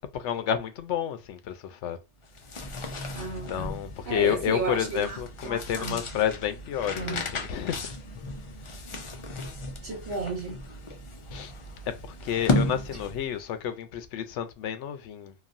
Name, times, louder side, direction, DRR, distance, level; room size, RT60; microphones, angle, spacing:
voice 1, 0.1-2.0 3.5-7.9 11.3-11.5 11.9-15.3, left 9 dB, 85° left, 0.9 m, -30 dB
sound 1, 2.2-13.4, left 2 dB, 55° left, 0.3 m, -34 dB
voice 2, 3.1-3.8 4.1-5.2 5.4-6.2 7.0-7.3 9.8-10.6, right 4 dB, 75° right, 1.2 m, -34 dB
3.0 x 2.4 x 2.5 m
omnidirectional pair, 1.2 m